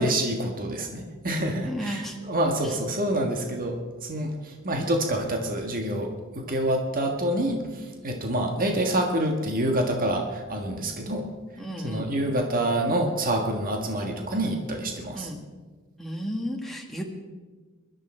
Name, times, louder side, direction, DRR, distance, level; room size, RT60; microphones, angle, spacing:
voice 1, 0.0-11.3 11.8-15.3, right 1 dB, 40° right, 2 dB, 1.5 m, -27 dB
voice 2, 1.6-2.2 2.6-2.7 11.6-12.1 15.1-15.4 16.0-17.0, equal, ahead, -1 dB, 1.6 m, -33 dB
21.0 x 12.0 x 4.4 m, 1.4 s
head